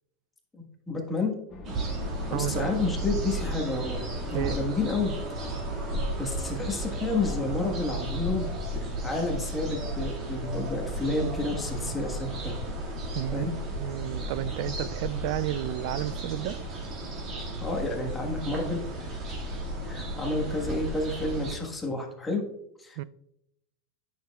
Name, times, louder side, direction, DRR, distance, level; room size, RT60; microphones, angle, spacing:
voice 1, 0.9-1.3 2.3-4.0 4.3-5.1 6.2-8.5 9.0-12.6 13.3-13.5 17.6-18.8 19.8-22.4 22.8-23.0, left 2 dB, 10° left, 1.4 m, -30 dB
sound 1, 1.5-6.9, left 3 dB, 30° left, 1.4 m, -43 dB
sound 2, 1.6-21.6, right 1 dB, 35° right, 2.0 m, -34 dB
voice 2, 2.3-2.7 4.3-4.6 13.1-13.5 13.8-16.6 23.0-23.1, right 14 dB, 60° right, 0.3 m, -31 dB
9.4 x 6.6 x 2.3 m
supercardioid pair, 135°, 0 cm